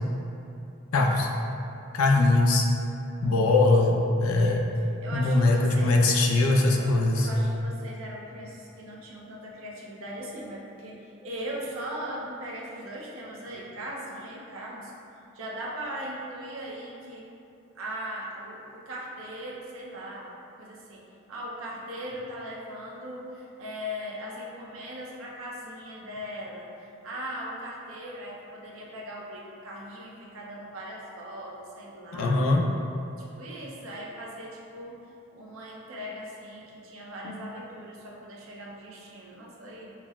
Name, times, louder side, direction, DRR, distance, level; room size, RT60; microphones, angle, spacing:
voice 1, 0.9-1.3 1.9-2.7 3.2-4.7 5.1-7.3 32.1-32.7 37.2-37.3, left 2 dB, 85° left, 1 dB, 0.4 m, -21 dB
voice 2, 5.0-6.0 6.8-14.9 15.3-17.3 17.7-32.4 33.2-35.0 35.3-39.9, equal, 75° right, -3 dB, 0.6 m, -39 dB
5.8 x 2.1 x 2.3 m, 2.8 s
head